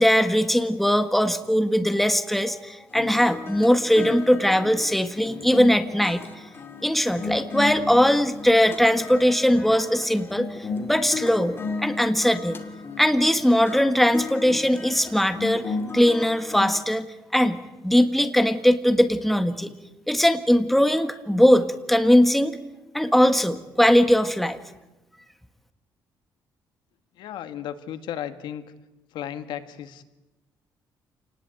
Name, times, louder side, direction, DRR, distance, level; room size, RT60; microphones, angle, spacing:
voice 1, 0.0-6.2 6.8-12.6 13.0-17.0 17.3-19.7 20.1-22.6 22.9-24.6, equal, ahead, 9 dB, 1.6 m, -20 dB
sound 1, 2.9-16.8, left 4 dB, 30° left, 2.6 m, -35 dB
voice 2, 27.2-28.6 29.1-30.0, left 10 dB, 85° left, 10 dB, 1.8 m, -34 dB
28.0 x 19.0 x 9.0 m, 1.0 s
cardioid pair, 130°, 8 cm